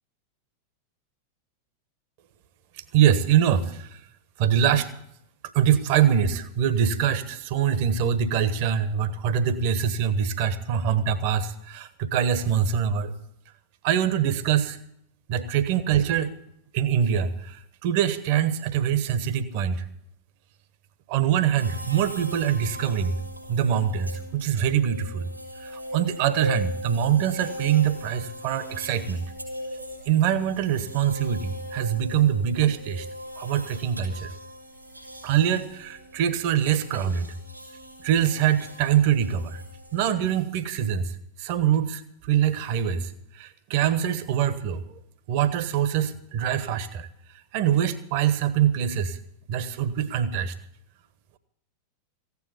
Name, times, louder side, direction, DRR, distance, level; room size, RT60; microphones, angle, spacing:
voice 1, 2.9-4.0 4.4-4.9 5.5-13.1 13.8-14.8 15.3-16.3 16.7-19.8 21.1-23.2 23.5-25.3 25.6-29.3 30.0-33.1 33.4-34.3 35.2-37.3 38.0-39.6 39.9-41.1 41.4-45.0 45.3-47.1 47.5-49.2 49.5-50.5, right 9 dB, 45° right, 13 dB, 1.3 m, -24 dB
sound 1, 21.6-40.1, equal, 85° right, 7.0 m, -40 dB
15.5 x 9.8 x 8.2 m, 0.75 s
figure-of-eight pair, 90°, 0 cm